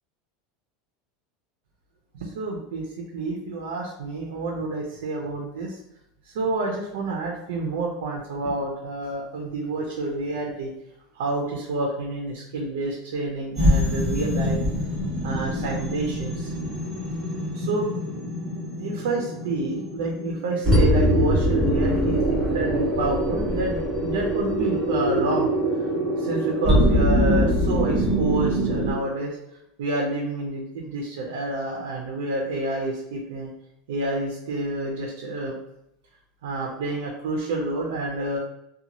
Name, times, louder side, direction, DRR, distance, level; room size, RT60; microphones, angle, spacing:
voice 1, 2.1-2.9 3.1-5.8 6.2-10.7 11.1-14.6 15.2-16.5 17.5-17.9 18.8-25.9 26.2-29.4 29.8-33.5 33.9-35.5 36.4-38.4, right 2 dB, 90° right, 0 dB, 0.5 m, -29 dB
sound 1, 13.6-28.9, equal, 10° right, 1.1 m, -23 dB
2.6 x 2.3 x 2.9 m, 0.80 s
supercardioid pair, 170°, 0 cm